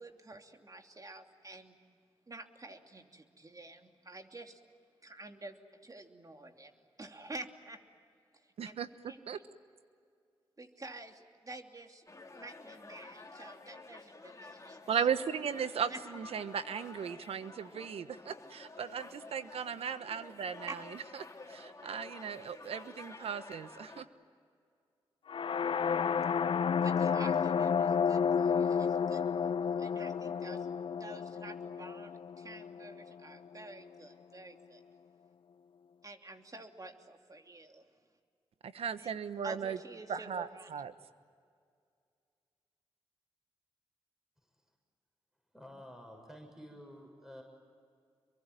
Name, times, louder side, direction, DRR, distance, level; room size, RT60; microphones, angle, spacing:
voice 1, 0.0-1.8 2.3-4.6 5.0-7.8 8.3-8.8 9.1-9.2 10.6-12.1 12.3-15.1 15.9-16.0 20.7-20.8 26.8-30.7 30.9-34.8 36.0-37.8 39.0-39.1 39.4-40.7, right 2 dB, 35° right, 4 dB, 2.9 m, -49 dB
voice 2, 8.6-9.4 14.9-20.8 21.5-24.1 38.6-39.8 40.1-40.9, right 7 dB, 75° right, 12 dB, 1.2 m, -37 dB
sound 1, 12.1-24.0, left 3 dB, 30° left, 3.0 m, -51 dB
sound 2, 25.3-33.2, left 6 dB, 60° left, 0.7 m, -31 dB
voice 3, 45.5-47.4, equal, 5° right, 2 dB, 6.9 m, -50 dB
27.5 x 23.0 x 9.2 m, 2.2 s
supercardioid pair, 45°, 10 cm